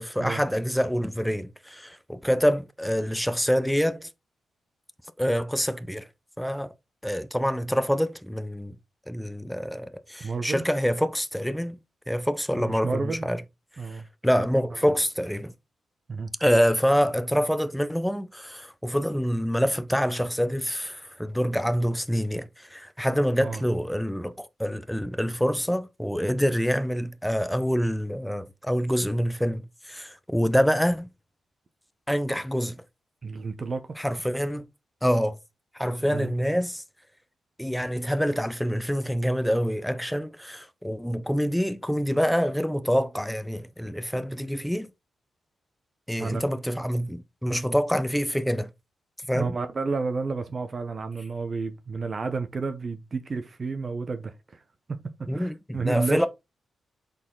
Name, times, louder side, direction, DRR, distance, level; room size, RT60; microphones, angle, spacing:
voice 1, 0.0-4.1 5.2-6.1 6.4-6.7 7.0-8.7 9.1-11.8 12.1-13.4 13.9-15.5 16.4-31.1 32.1-32.8 34.0-34.6 35.0-35.4 35.7-36.8 37.6-44.9 46.1-48.7 49.3-49.6 55.3-56.3, equal, ahead, 0.5 m, -26 dB
voice 2, 10.2-10.6 12.5-13.3 13.8-14.1 16.1-16.3 23.4-23.6 33.2-34.0 36.1-36.3 46.2-46.4 49.3-54.6 54.9-55.0 55.3-56.3, right 4 dB, 40° right, 0.8 m, -31 dB
6.1 x 4.3 x 3.7 m
cardioid pair, 115°, 0 cm